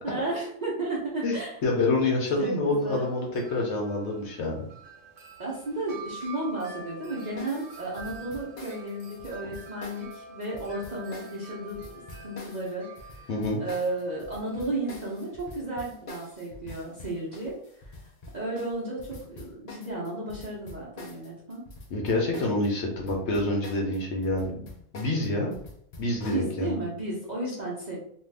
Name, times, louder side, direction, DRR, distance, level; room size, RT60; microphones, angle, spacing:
voice 1, 0.0-1.6 2.0-2.1 2.4-3.1 5.4-11.9 12.2-13.3 13.6-17.9 18.3-21.6 26.2-28.0, right 2 dB, 40° right, -5 dB, 0.7 m, -33 dB
voice 2, 1.2-4.6 13.3-13.6 21.9-24.7 24.9-25.5 26.0-26.7, left 2 dB, 60° left, -1 dB, 0.9 m, -27 dB
Wind chime, 2.7-16.0, right 3 dB, 65° right, 1.0 m, -47 dB
sound 1, 7.4-22.7 22.9-26.5, left 2 dB, 90° left, 0.3 m, -45 dB
2.5 x 2.4 x 3.3 m, 0.67 s
omnidirectional pair, 1.4 m